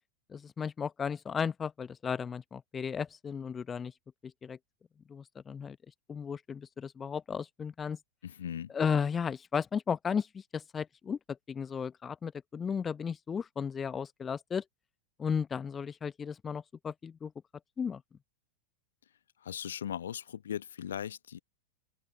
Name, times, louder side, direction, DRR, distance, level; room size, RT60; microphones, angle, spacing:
voice 1, 0.3-3.9 4.2-4.6 5.1-5.8 6.1-8.0 8.7-14.6 15.2-17.3 17.8-18.0, left 6 dB, 20° left, 0.8 m, -34 dB
voice 2, 8.2-8.7 19.4-21.4, left 9 dB, 65° left, 1.2 m, -38 dB
open air
figure-of-eight pair, 90°, 0 cm